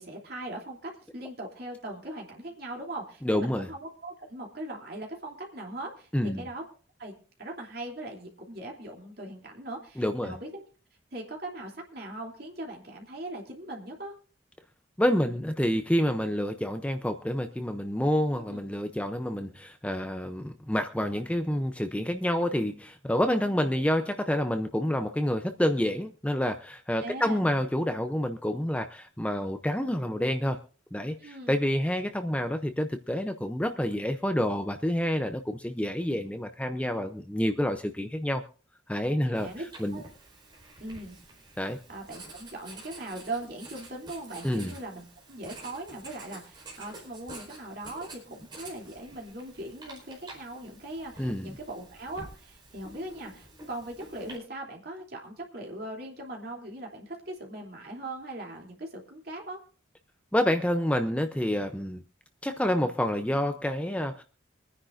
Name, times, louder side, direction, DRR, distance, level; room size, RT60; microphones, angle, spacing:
voice 1, 0.0-6.6 7.0-7.1 7.4-10.6 11.1-14.1 18.4-18.6 27.0-27.4 31.2-31.6 39.2-39.6 39.9-40.1 40.8-41.2 41.9-59.6, right 1 dB, 50° right, 0 dB, 3.1 m, -40 dB
voice 2, 3.2-3.7 6.1-6.5 10.0-10.4 15.0-30.6 30.9-38.4 38.9-39.5 39.8-40.0 41.6-41.8 44.4-44.7 51.2-51.5 60.3-62.0 62.4-64.2, equal, 5° left, 7 dB, 0.6 m, -28 dB
Writing, 39.3-54.4, right 2 dB, 25° right, 4.8 m, -49 dB
25.5 x 9.9 x 2.6 m, 0.40 s
head